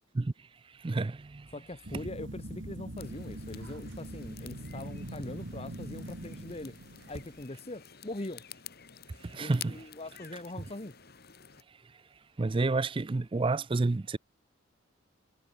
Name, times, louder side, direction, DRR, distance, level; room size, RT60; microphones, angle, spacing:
voice 1, 0.8-1.5 9.2-9.8 12.4-14.2, right 3 dB, 25° right, 0.4 m, -30 dB
voice 2, 1.5-6.7 7.1-8.4 9.3-10.9, left 1 dB, 30° left, 1.3 m, -42 dB
sound 1, 1.8-7.4, right 1 dB, 70° right, 2.1 m, -42 dB
sound 2, 3.0-11.6, left 9 dB, 50° left, 3.3 m, -50 dB
head